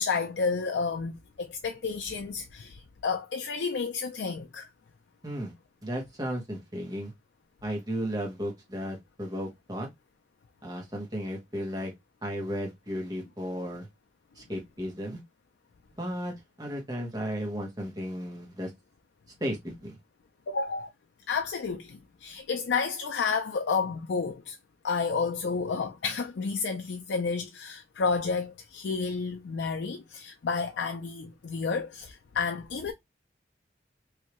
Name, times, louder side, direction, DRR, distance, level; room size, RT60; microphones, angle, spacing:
voice 1, 0.0-4.7 20.5-20.9 21.3-24.6 24.8-32.9, left 5 dB, 85° left, 0.4 m, -31 dB
voice 2, 5.8-7.1 7.6-9.9 10.6-11.9 12.2-13.9 14.4-15.2 16.0-18.7 19.4-19.9, equal, 20° right, 1.2 m, -34 dB
3.3 x 2.7 x 2.9 m
head